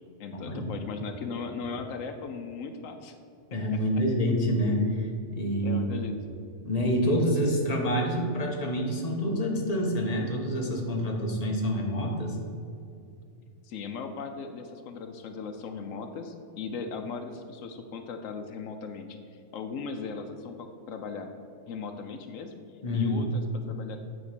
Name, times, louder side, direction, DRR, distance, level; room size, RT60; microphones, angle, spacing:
voice 1, 0.2-3.1 5.6-6.2 13.6-19.1 19.5-21.3 21.7-22.5 22.9-24.0, left 5 dB, 85° left, 6 dB, 1.0 m, -38 dB
voice 2, 3.5-5.8 6.6-12.4 22.8-23.2, equal, 30° left, -1 dB, 1.3 m, -27 dB
9.6 x 3.7 x 6.7 m, 2.5 s
omnidirectional pair, 1.3 m